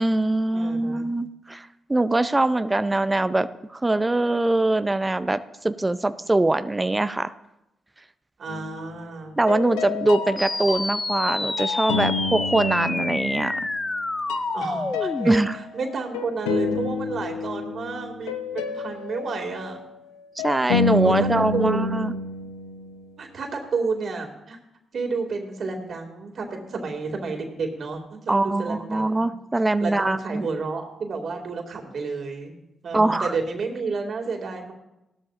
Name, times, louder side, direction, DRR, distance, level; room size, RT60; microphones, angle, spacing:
voice 1, 0.0-7.3 9.4-13.6 15.3-15.6 20.4-22.1 28.3-30.4 32.9-33.3, right 2 dB, 20° right, 12 dB, 0.6 m, -23 dB
voice 2, 0.5-1.1 8.4-9.4 14.5-19.8 21.0-22.1 23.2-24.6 24.9-29.3 29.8-32.6 32.8-34.7, right 4 dB, 60° right, 2 dB, 2.5 m, -31 dB
sound 1, 8.5-9.1 9.5-14.0 14.3-23.1, left 5 dB, 90° left, 0.7 m, -30 dB
sound 2, 10.4-15.4, left 2 dB, 25° left, 0.4 m, -28 dB
17.5 x 12.5 x 2.6 m, 0.90 s
hypercardioid pair, 45°, 0 cm